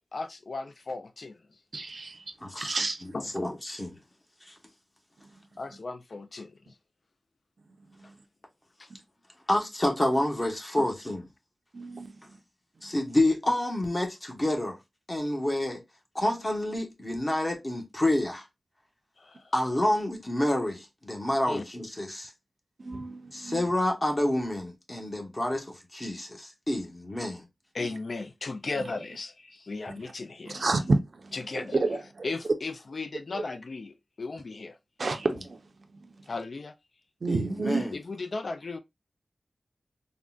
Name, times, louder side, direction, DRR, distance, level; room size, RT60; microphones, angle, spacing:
voice 1, 0.1-1.4 3.1-3.2 5.6-6.8 8.8-8.9 10.8-10.9 19.2-19.5 21.5-21.6 27.7-30.6 31.3-31.8 32.2-34.8 36.3-36.7 37.9-38.8, left 3 dB, 65° left, 0.3 m, -36 dB
voice 2, 1.7-3.1 5.2-5.3 7.8-8.2 8.9-9.0 11.7-12.4 12.8-12.9 22.8-23.7 27.8-27.9 28.8-28.9 30.0-30.1 30.5-32.3 33.3-33.4 35.0-36.3 37.2-37.9, right 3 dB, 65° right, 0.5 m, -31 dB
voice 3, 2.4-2.8 3.3-4.0 4.5-4.6 9.5-11.2 12.8-14.8 15.1-15.8 16.1-18.4 19.5-22.3 23.3-27.5 37.3-37.9, left 1 dB, 30° left, 0.9 m, -28 dB
3.6 x 2.1 x 2.3 m
wide cardioid pair, 85°, 0 cm